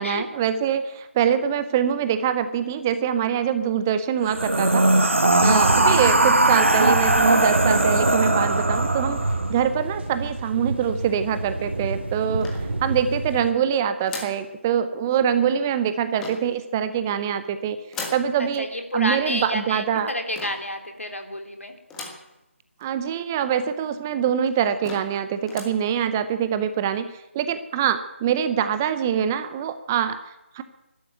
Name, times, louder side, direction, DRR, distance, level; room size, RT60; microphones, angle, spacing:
voice 1, 0.0-4.9 5.4-9.2 9.5-12.5 12.8-17.8 18.1-18.7 18.9-20.1 22.8-30.6, right 8 dB, 15° right, 11 dB, 0.6 m, -24 dB
sound 1, 4.3-9.5, right 2 dB, 70° right, 2.1 m, -19 dB
sound 2, 5.4-13.5, right 2 dB, 55° right, 2.8 m, -28 dB
sound 3, 12.4-13.1 14.0-14.5 16.1-16.6 17.9-18.3 20.3-20.7 21.9-22.3 22.8-22.9 23.1-23.2 24.0-24.1 24.5-24.6 24.8-25.2 25.4-25.8, left 3 dB, 5° left, 1.5 m, -37 dB
voice 2, 18.4-21.7, left 1 dB, 80° left, 5 dB, 3.3 m, -30 dB
13.0 x 12.0 x 9.2 m, 0.96 s
figure-of-eight pair, 155°, 7 cm